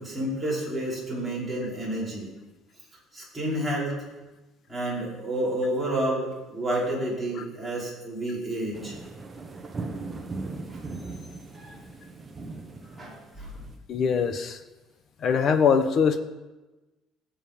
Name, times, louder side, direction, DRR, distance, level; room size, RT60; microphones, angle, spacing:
voice 1, 0.0-2.3 3.1-3.9 4.7-9.0 10.7-10.8 11.5-11.8 13.0-13.5, right 1 dB, ahead, -8 dB, 5.1 m, -30 dB
sound 1, 8.7-13.8, right 3 dB, 15° right, 1.3 m, -39 dB
voice 2, 13.9-14.6 15.2-16.2, left 6 dB, 40° left, 9 dB, 1.1 m, -22 dB
18.5 x 7.9 x 5.3 m, 1.1 s
cardioid pair, 150°, 0 cm